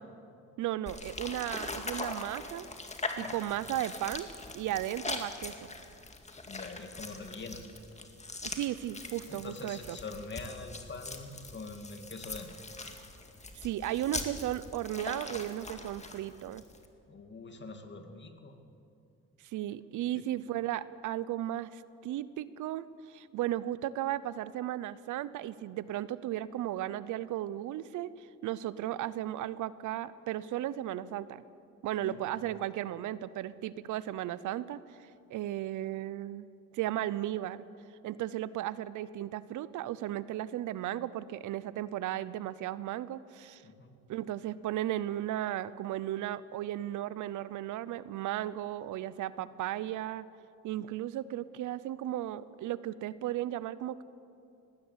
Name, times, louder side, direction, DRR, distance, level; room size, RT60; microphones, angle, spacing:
voice 1, 0.6-2.7 3.2-4.3 4.5-5.6 8.4-10.0 13.5-16.6 19.4-31.4 31.8-36.5 36.7-37.6 38.0-43.6 44.1-50.2 50.6-54.0, right 13 dB, 85° right, 17 dB, 0.7 m, -35 dB
sound 1, 0.9-16.9, left 3 dB, 20° left, 2.1 m, -42 dB
voice 2, 6.5-7.6 9.3-12.5 17.1-18.6 20.1-20.2 32.0-32.2 43.6-43.9, left 3 dB, 40° left, 6 dB, 2.5 m, -44 dB
19.0 x 17.0 x 8.2 m, 2.5 s
cardioid pair, 90°, 30 cm